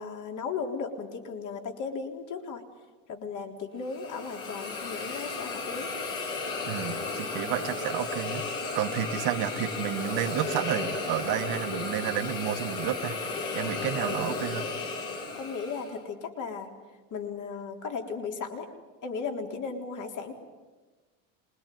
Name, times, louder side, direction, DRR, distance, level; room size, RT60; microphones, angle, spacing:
voice 1, 0.0-2.6 3.1-5.9 7.2-7.5 8.9-9.0 13.5-13.8 15.3-16.7 17.1-18.7 19.0-20.3, left 5 dB, 45° left, 3 dB, 3.9 m, -36 dB
Hiss, 3.8-16.0, left 3 dB, 75° left, 6.3 m, -34 dB
voice 2, 6.7-13.2 13.5-14.7, right 12 dB, 65° right, 5 dB, 1.8 m, -31 dB
27.0 x 21.0 x 9.3 m, 1.3 s
supercardioid pair, 95°, 41 cm